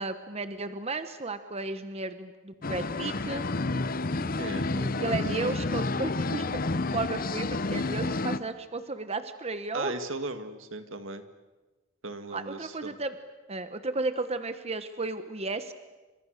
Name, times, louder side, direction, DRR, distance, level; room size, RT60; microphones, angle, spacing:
voice 1, 0.0-3.5 5.0-9.9 12.3-13.2 13.5-15.7, right 3 dB, 30° right, 10 dB, 1.2 m, -34 dB
sound 1, 2.6-8.4, left 3 dB, 45° left, 0.8 m, -30 dB
voice 2, 4.4-5.3 9.7-11.2 12.0-13.0, right 2 dB, 80° right, 8 dB, 2.0 m, -37 dB
30.0 x 26.5 x 6.7 m, 1.2 s
head